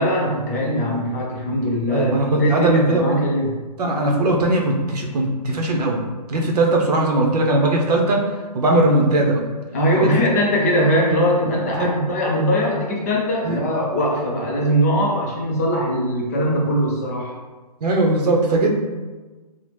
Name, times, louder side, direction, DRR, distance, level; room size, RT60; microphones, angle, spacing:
voice 1, 0.0-3.5 9.7-17.3, equal, 25° left, -2 dB, 0.4 m, -21 dB
voice 2, 1.9-3.2 3.8-6.0 6.3-8.3 8.5-9.4 9.9-10.4 11.1-11.2 11.7-11.9 13.4-13.6 17.8-18.7, right 2 dB, 70° right, 1 dB, 0.7 m, -19 dB
2.8 x 2.0 x 3.3 m, 1.3 s
hypercardioid pair, 165°, 21 cm